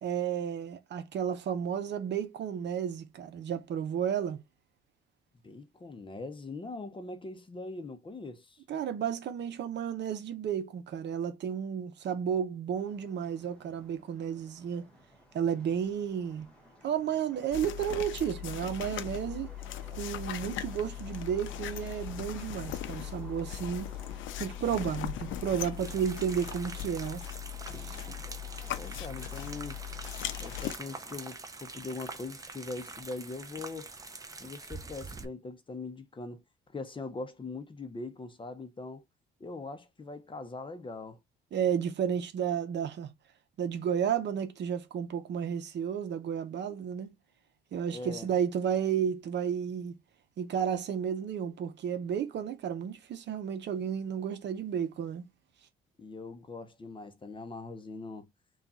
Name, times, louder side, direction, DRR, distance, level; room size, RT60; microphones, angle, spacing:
voice 1, 0.0-4.4 8.7-14.9 15.3-16.5 16.8-19.5 19.9-23.9 24.4-27.2 27.8-28.0 41.5-43.1 43.6-47.1 47.7-49.9 50.4-55.2, right 8 dB, 60° right, 0.7 m, -32 dB
voice 2, 5.4-8.6 28.7-29.8 30.4-33.9 34.4-36.4 36.7-39.0 39.4-41.2 47.9-48.3 56.0-58.3, left 3 dB, 25° left, 0.7 m, -41 dB
sound 1, 12.7-31.2, equal, 5° left, 1.5 m, -54 dB
sound 2, 17.5-30.8, left 12 dB, 75° left, 0.5 m, -39 dB
sound 3, 25.8-35.3, right 3 dB, 15° right, 0.6 m, -45 dB
3.6 x 2.4 x 4.1 m
cardioid pair, 90°, 20 cm